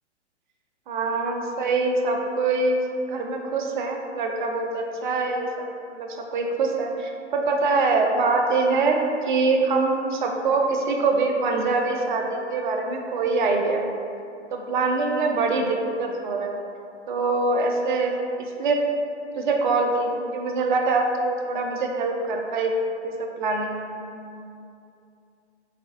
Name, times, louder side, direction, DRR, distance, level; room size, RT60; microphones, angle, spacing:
voice 1, 0.9-2.8 3.1-5.7 5.9-9.0 9.3-13.9 14.5-16.6 17.1-18.1 18.4-18.8 19.4-23.9, right 3 dB, 45° right, 2 dB, 0.4 m, -24 dB
3.6 x 3.2 x 2.5 m, 2.6 s
figure-of-eight pair, 115°, 36 cm